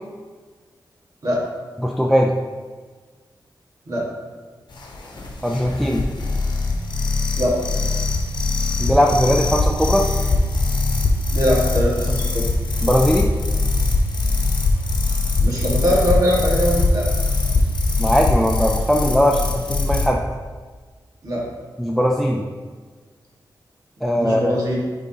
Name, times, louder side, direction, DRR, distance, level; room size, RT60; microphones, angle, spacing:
voice 1, 1.8-2.3 5.4-6.1 8.8-10.1 12.8-13.3 18.0-20.2 21.8-22.4 24.0-24.6, equal, ahead, 0 dB, 0.4 m, -19 dB
sound 1, 4.7-20.1, left 2 dB, 75° left, 0.9 m, -21 dB
voice 2, 11.3-12.5 15.4-17.1 21.2-21.5 24.2-24.8, equal, 50° right, -4 dB, 1.6 m, -21 dB
9.2 x 3.6 x 2.8 m, 1.4 s
wide cardioid pair, 140°, 8 cm